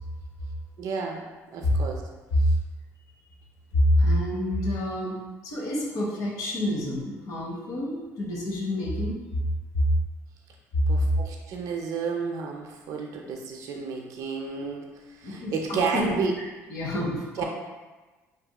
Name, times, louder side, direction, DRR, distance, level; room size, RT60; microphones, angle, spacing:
voice 1, 0.8-2.0 2.4-2.5 10.9-16.3 17.4-17.5, right 5 dB, 65° right, 1 dB, 0.4 m, -31 dB
voice 2, 3.7-5.2 5.4-9.2 10.7-10.8 15.2-16.4 16.7-17.4, left 1 dB, 70° left, -2 dB, 0.7 m, -27 dB
2.7 x 2.5 x 2.2 m, 1.2 s
supercardioid pair, 80°, 6 cm